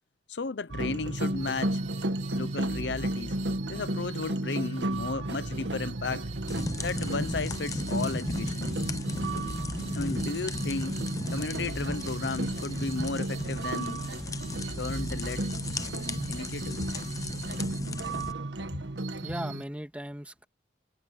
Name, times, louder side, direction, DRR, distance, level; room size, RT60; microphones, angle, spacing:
voice 1, 0.3-1.9 2.3-3.3 3.7-6.3 6.8-8.7 9.9-11.0 11.3-14.2 14.8-15.5 15.9-16.9, left 3 dB, 80° left, 0.7 m, -34 dB
sound 1, 0.7-19.6, right 1 dB, 85° right, 1.6 m, -33 dB
sound 2, 1.1-17.6, right 8 dB, 40° right, 5.0 m, -51 dB
sound 3, 6.5-18.3, left 2 dB, 20° left, 0.7 m, -36 dB
voice 2, 19.1-20.5, equal, 10° right, 1.9 m, -38 dB
head